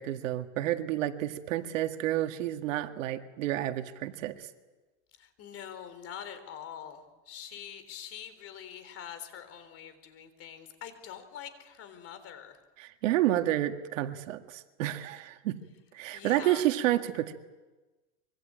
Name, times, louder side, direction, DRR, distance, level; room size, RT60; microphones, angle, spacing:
voice 1, 0.0-4.5 12.8-15.6 15.9-17.3, right 14 dB, 75° right, 7 dB, 2.0 m, -30 dB
voice 2, 5.2-12.5 16.1-16.6, left 9 dB, 35° left, 10 dB, 3.9 m, -44 dB
25.0 x 23.5 x 8.8 m, 1.2 s
supercardioid pair, 130°, 39 cm